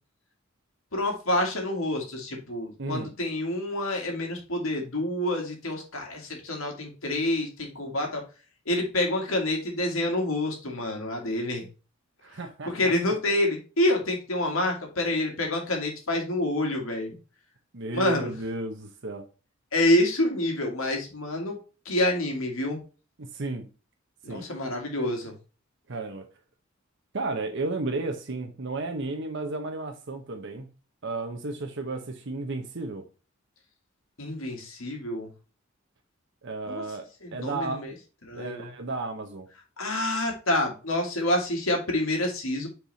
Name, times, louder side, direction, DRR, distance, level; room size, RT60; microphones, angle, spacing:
voice 1, 0.9-8.2 8.7-11.7 12.7-17.2 17.9-18.3 19.7-21.6 21.9-22.8 24.2-25.3 34.2-35.3 36.7-36.8 37.2-37.9 38.3-38.7 39.8-42.7, left 1 dB, 85° left, 2.1 m, -27 dB
voice 2, 2.8-3.1 12.2-13.2 17.7-19.2 23.2-23.7 24.3-24.5 25.9-26.2 27.1-30.7 31.0-33.0 36.4-37.8 38.3-39.5, right 3 dB, 60° right, 0.9 m, -33 dB
5.4 x 4.6 x 4.0 m
head